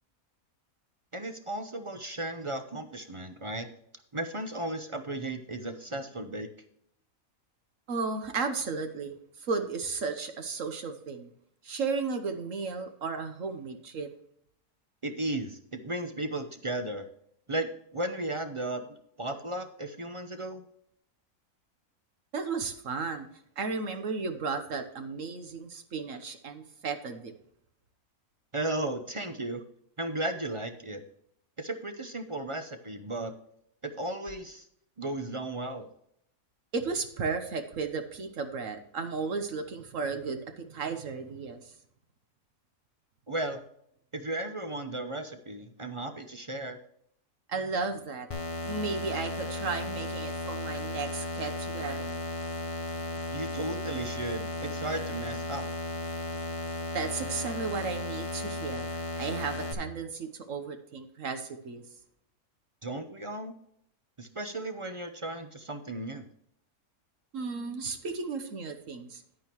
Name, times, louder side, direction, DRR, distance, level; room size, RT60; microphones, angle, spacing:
voice 1, 1.1-3.7 4.1-6.5 15.0-17.1 17.5-18.8 19.2-20.6 28.5-29.6 30.0-31.0 31.6-33.3 33.8-34.6 35.0-35.9 43.3-43.6 44.1-46.8 53.3-55.7 62.8-63.5 64.2-66.3, right 1 dB, 30° right, 8 dB, 0.6 m, -35 dB
voice 2, 7.9-11.3 11.6-14.1 22.3-23.3 23.6-27.3 36.7-41.7 47.5-48.3 48.6-52.5 56.9-61.8 67.3-69.2, right 4 dB, 65° right, 7 dB, 1.3 m, -34 dB
sound 1, 48.3-59.7, left 2 dB, 30° left, 0.8 m, -35 dB
10.5 x 9.3 x 3.0 m, 0.70 s
omnidirectional pair, 1.5 m